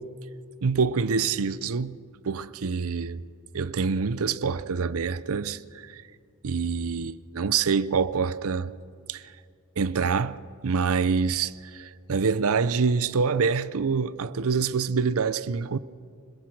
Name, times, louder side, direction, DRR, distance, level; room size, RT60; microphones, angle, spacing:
voice 1, 0.6-2.0 2.2-3.2 3.5-6.0 6.4-8.7 9.1-9.2 9.8-10.4 10.6-15.8, right 5 dB, 65° right, 0.6 m, -26 dB
26.0 x 21.0 x 6.0 m
head